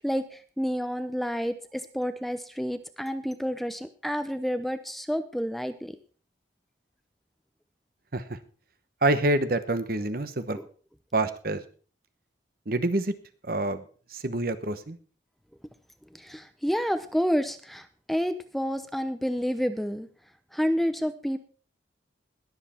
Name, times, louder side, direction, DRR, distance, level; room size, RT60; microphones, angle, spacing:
voice 1, 0.0-6.0 10.6-10.7 16.1-20.1 20.5-21.4, equal, ahead, 10 dB, 0.7 m, -29 dB
voice 2, 9.0-10.6 11.1-11.6 12.7-13.1 13.4-13.8 14.1-15.0, right 2 dB, 50° right, 11 dB, 1.1 m, -27 dB
20.5 x 7.7 x 4.4 m, 0.40 s
head